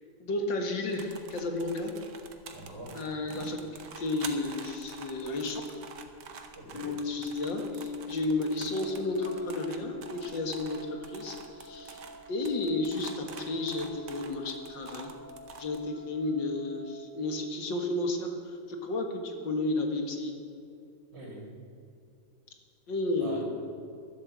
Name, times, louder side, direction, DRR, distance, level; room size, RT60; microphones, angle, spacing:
voice 1, 0.2-1.9 2.9-3.6 4.0-5.8 6.8-12.0 12.3-15.2 15.6-20.4 22.9-23.4, left 2 dB, 75° left, 4 dB, 2.4 m, -32 dB
sound 1, 0.9-15.8, right 6 dB, 65° right, 1.7 m, -47 dB
voice 2, 2.5-3.5 6.5-7.0 21.1-21.5 23.2-23.4, right 1 dB, 40° right, -11 dB, 4.2 m, -44 dB
Piano, 6.7-12.1, left 5 dB, 60° left, 4.5 m, -41 dB
sound 2, 8.7-16.9, equal, 20° left, 1.9 m, -50 dB
12.0 x 11.0 x 7.6 m, 2.5 s
omnidirectional pair, 2.0 m